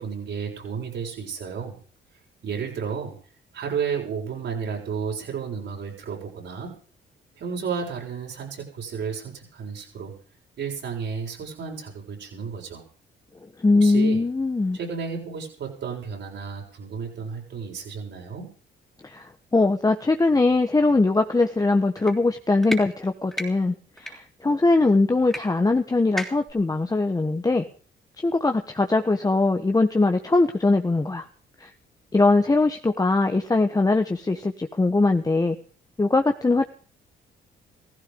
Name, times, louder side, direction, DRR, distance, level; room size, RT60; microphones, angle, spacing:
voice 1, 0.0-1.8 2.4-3.2 3.5-6.7 7.4-10.1 10.6-12.8 13.7-14.2 14.7-18.5, right 6 dB, 65° right, 0 dB, 7.2 m, -32 dB
voice 2, 13.6-14.8 19.0-27.7 28.2-31.3 31.6-31.7 32.1-35.6 36.0-36.6, left 3 dB, 20° left, 5 dB, 1.3 m, -21 dB
sound 1, 22.0-22.1 22.6-22.8 23.3-23.5 24.0-24.1 25.3-25.4 25.7-25.8 26.2-26.5, equal, ahead, 3.2 m, -31 dB
16.0 x 15.5 x 5.3 m, 0.43 s
cardioid pair, 90°, 20 cm